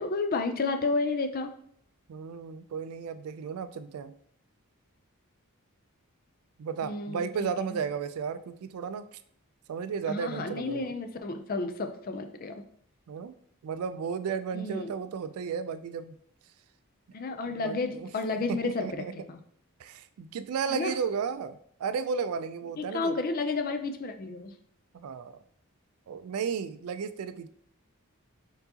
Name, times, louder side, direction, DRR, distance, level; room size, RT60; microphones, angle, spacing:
voice 1, 0.0-1.5 6.8-7.5 10.1-12.5 14.5-14.9 17.1-19.0 19.3-19.4 20.7-20.9 22.8-24.5, left 3 dB, 40° left, 7 dB, 0.4 m, -31 dB
voice 2, 2.1-4.1 6.6-9.2 9.7-10.9 13.1-13.3 13.6-16.2 17.5-18.1 18.5-19.1 19.8-23.2 24.9-25.4 26.1-27.5, right 6 dB, 75° right, 12 dB, 0.3 m, -34 dB
4.5 x 3.9 x 2.8 m, 0.65 s
head